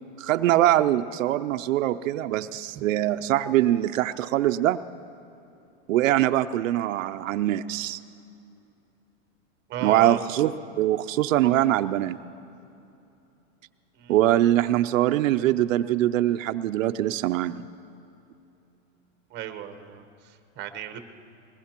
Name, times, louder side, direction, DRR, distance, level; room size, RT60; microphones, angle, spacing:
voice 1, 0.2-4.8 5.9-8.0 9.8-10.5 10.8-12.2 14.1-17.5, right 13 dB, 85° right, 10 dB, 0.6 m, -23 dB
voice 2, 9.7-10.2 14.0-14.1 19.3-21.0, right 10 dB, 25° right, 8 dB, 1.0 m, -35 dB
21.5 x 21.0 x 2.9 m, 2.8 s
supercardioid pair, 140°, 38 cm